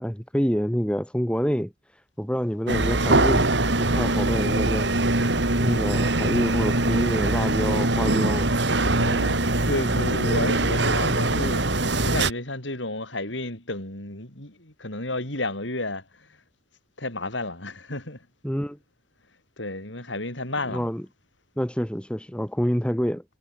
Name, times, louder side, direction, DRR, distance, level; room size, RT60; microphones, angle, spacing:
voice 1, 0.0-1.7 2.2-3.5 3.8-4.9 5.6-8.5 18.4-18.8 20.7-21.1 21.6-23.2, equal, 5° left, 2.2 m, -27 dB
sound 1, 2.7-12.3, right 2 dB, 65° right, 3.3 m, -22 dB
voice 2, 9.0-11.8 12.0-16.0 17.0-18.2 19.6-20.9, left 2 dB, 75° left, 6.5 m, -32 dB
head